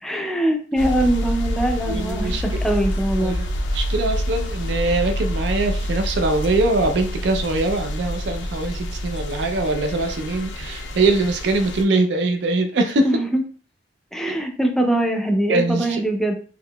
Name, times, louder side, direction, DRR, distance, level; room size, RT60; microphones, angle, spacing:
voice 1, 0.0-3.4 13.0-13.4 14.1-16.3, right 1 dB, ahead, 3 dB, 0.4 m, -22 dB
sound 1, 0.8-11.8, equal, 85° left, 0.5 m, -27 dB
voice 2, 1.9-2.4 3.2-13.0 15.5-16.0, right 2 dB, 70° right, 6 dB, 0.4 m, -22 dB
3.7 x 2.8 x 2.2 m, 0.42 s
head